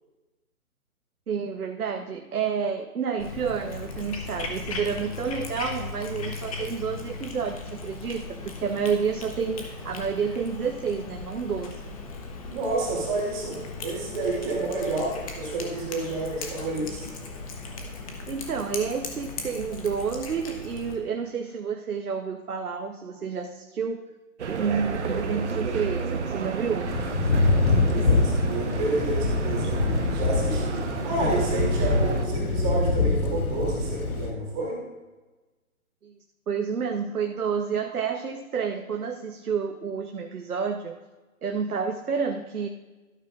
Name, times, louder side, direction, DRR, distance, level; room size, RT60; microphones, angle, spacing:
voice 1, 1.3-11.8 18.3-24.0 24.5-27.0 36.0-36.2 36.5-41.0 41.4-42.7, right 6 dB, 80° right, 4 dB, 1.0 m, -29 dB
Cat, 3.2-21.0, left 3 dB, 25° left, 1.1 m, -37 dB
voice 2, 12.5-17.1 27.8-29.7 30.1-34.8, right 3 dB, 20° right, -4 dB, 2.7 m, -30 dB
sound 1, 24.4-32.3, right 5 dB, 50° right, 1.1 m, -31 dB
Thunder / Rain, 26.9-34.3, left 3 dB, 75° left, 1.4 m, -24 dB
12.5 x 11.5 x 2.5 m, 1.2 s
hypercardioid pair, 150°, 44 cm